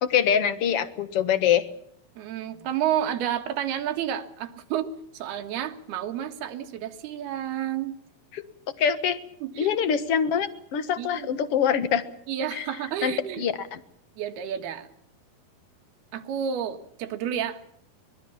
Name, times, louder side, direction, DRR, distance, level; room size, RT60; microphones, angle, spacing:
voice 1, 0.0-1.7 8.3-8.4 8.8-9.2 9.6-12.0 12.5-12.6 13.0-13.8, left 8 dB, 65° left, 11 dB, 1.5 m, -24 dB
voice 2, 2.2-4.9 5.1-7.9 9.4-9.8 11.0-11.3 12.3-13.5 14.2-14.9 16.1-17.6, right 10 dB, 75° right, 6 dB, 3.6 m, -30 dB
24.0 x 20.5 x 7.1 m, 0.70 s
omnidirectional pair, 4.7 m